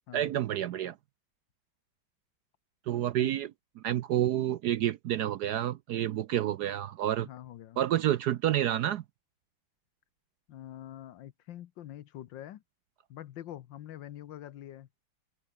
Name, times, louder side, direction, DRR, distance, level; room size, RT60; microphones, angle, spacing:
voice 1, 0.1-1.0 2.9-7.3 7.8-9.0, right 12 dB, 70° right, 1.0 m, -29 dB
voice 2, 7.2-7.8 10.5-12.6 13.1-14.9, left 12 dB, 75° left, 1.5 m, -45 dB
open air
omnidirectional pair, 2.2 m